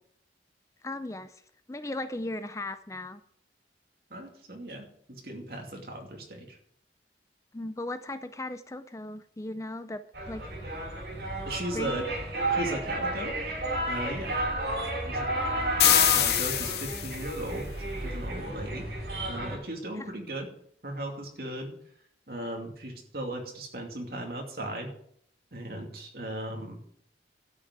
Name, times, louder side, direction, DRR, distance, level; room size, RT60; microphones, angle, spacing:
voice 1, 0.8-1.4 1.7-3.2 7.5-10.4 11.7-12.0 20.0-20.1, left 2 dB, 15° left, 11 dB, 0.4 m, -37 dB
voice 2, 4.1-6.6 11.5-12.1 12.5-13.3 13.9-14.4 15.1-15.3 15.8-18.8 19.3-20.5 20.8-21.7 22.3-24.9 25.5-26.8, right 1 dB, 55° right, 1 dB, 2.5 m, -37 dB
sound 1, 10.1-19.6, right 1 dB, 75° right, 5.8 m, -32 dB
sound 2, 15.8-17.3, left 12 dB, 65° left, 0.7 m, -24 dB
12.5 x 6.1 x 8.0 m, 0.66 s
head